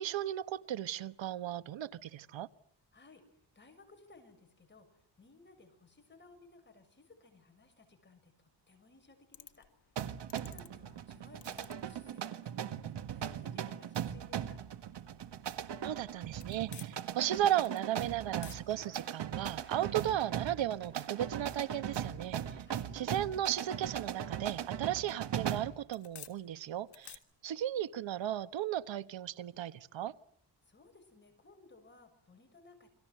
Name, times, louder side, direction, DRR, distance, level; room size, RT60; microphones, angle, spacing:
voice 1, 0.0-2.5 15.8-22.6 22.9-30.2, right 11 dB, 85° right, 1.2 m, -35 dB
voice 2, 2.9-9.7 10.4-14.6 22.6-22.9 30.6-32.9, left 3 dB, 25° left, 6.6 m, -60 dB
robot star II recorder camera shutter, 9.3-27.2, left 9 dB, 65° left, 3.0 m, -60 dB
sound 1, 10.0-25.8, right 9 dB, 70° right, 1.8 m, -39 dB
Scratching (performance technique), 17.3-17.6 18.0-20.5 20.8-25.0, right 3 dB, 25° right, 2.8 m, -57 dB
29.5 x 25.0 x 7.8 m
wide cardioid pair, 160°, 44 cm